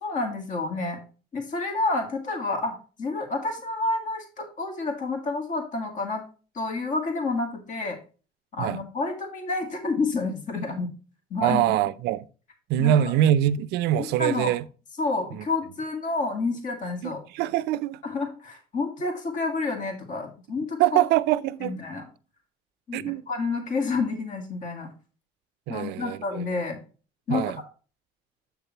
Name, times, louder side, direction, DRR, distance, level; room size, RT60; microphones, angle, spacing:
voice 1, 0.0-1.0 1.3-6.2 6.5-8.0 8.5-10.9 11.3-11.8 12.8-13.1 14.2-14.5 15.0-17.2 18.0-20.8 21.6-22.1 22.9-24.9 25.7-26.8 27.3-27.5, left 3 dB, 50° left, 2.2 m, -29 dB
voice 2, 11.4-12.3 12.7-14.6 15.3-15.4 17.0-18.0 20.8-21.8 22.9-23.2 25.7-26.4 27.3-27.6, right 12 dB, 85° right, 0.5 m, -24 dB
7.9 x 6.7 x 2.9 m
cardioid pair, 110°, 17 cm